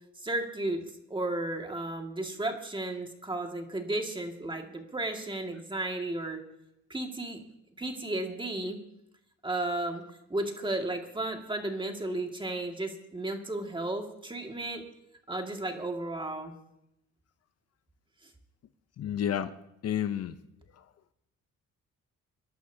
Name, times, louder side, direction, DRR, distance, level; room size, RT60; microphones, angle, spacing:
voice 1, 0.2-0.8 1.1-6.4 6.9-7.4 7.8-8.8 9.4-10.0 10.3-14.8 15.3-16.5, right 2 dB, 15° right, 3 dB, 2.0 m, -33 dB
voice 2, 19.0-19.5 19.8-20.4, left 9 dB, 55° left, 12 dB, 0.7 m, -30 dB
26.5 x 11.0 x 2.8 m, 0.83 s
cardioid pair, 90°, 30 cm